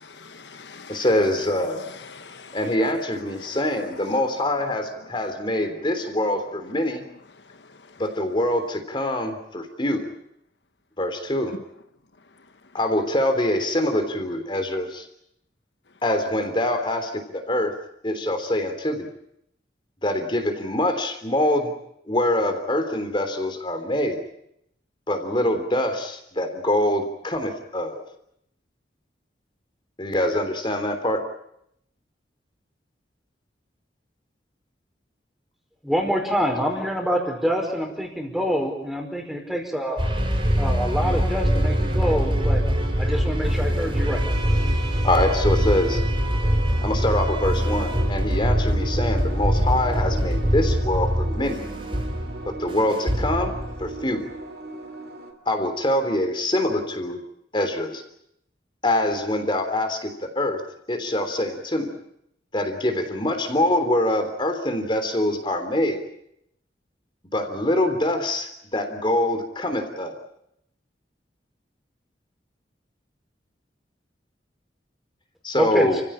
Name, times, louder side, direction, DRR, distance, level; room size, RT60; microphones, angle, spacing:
voice 1, 0.0-1.1 1.5-2.8 3.3-4.4 5.0-5.3 5.6-5.7 6.5-6.6 7.4-8.0 11.5-11.6, left 4 dB, 80° left, 1.2 m, -43 dB
voice 2, 0.9-1.8 2.5-7.0 8.0-10.1 11.0-11.5 12.7-15.1 16.0-17.7 18.0-19.1 20.0-21.7 22.1-24.2 25.1-28.0 30.0-31.2 45.0-46.0 46.8-51.6 52.5-54.3 55.5-57.2 57.5-58.0 58.8-60.6 60.9-62.0 62.5-66.0 67.3-70.2 75.4-76.0, left 1 dB, 30° left, 3.4 m, -24 dB
voice 3, 35.8-40.0 40.6-42.6 43.0-44.2 75.5-76.0, equal, ahead, 4.9 m, -26 dB
sound 1, 40.0-54.0, equal, 30° right, 5.5 m, -23 dB
sound 2, 41.0-55.3, right 2 dB, 60° right, 3.4 m, -39 dB
30.0 x 16.0 x 8.8 m
head